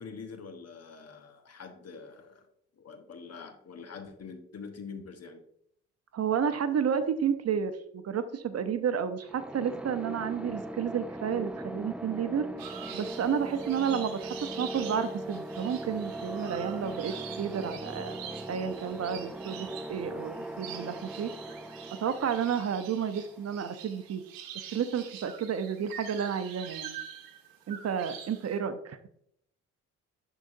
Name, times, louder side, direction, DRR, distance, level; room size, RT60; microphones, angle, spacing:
voice 1, 0.0-2.5 2.7-5.4, left 5 dB, 45° left, 6 dB, 1.3 m, -45 dB
voice 2, 6.1-12.5 12.9-18.2 18.5-21.3 21.9-24.2 24.7-27.0 27.7-29.0, right 7 dB, 45° right, 10 dB, 0.7 m, -31 dB
sound 1, 9.3-24.0, right 1 dB, 5° right, 0.5 m, -40 dB
sound 2, 12.6-28.6, right 9 dB, 70° right, 1.0 m, -45 dB
10.5 x 4.0 x 2.7 m, 0.70 s
hypercardioid pair, 50°, 35 cm